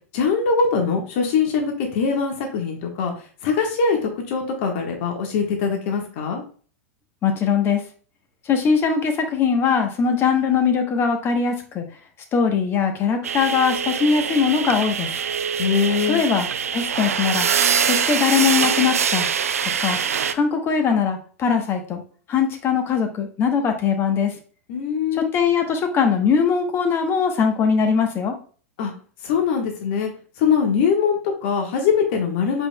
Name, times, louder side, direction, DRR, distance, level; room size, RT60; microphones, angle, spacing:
voice 1, 0.1-6.4 15.6-16.2 24.7-25.3 28.8-28.9 29.2-30.1 30.4-32.7, left 5 dB, 55° left, 2 dB, 1.2 m, -22 dB
voice 2, 7.2-7.9 8.4-11.8 12.3-15.1 16.1-16.5 16.7-17.5 17.8-19.3 19.8-20.0 20.3-22.0 22.3-24.4 25.2-28.4, left 6 dB, 30° left, 5 dB, 1.0 m, -21 dB
sound 1, 13.2-20.3, right 7 dB, 75° right, 0.4 m, -23 dB
5.1 x 4.5 x 2.2 m, 0.41 s
figure-of-eight pair, 95°, 8 cm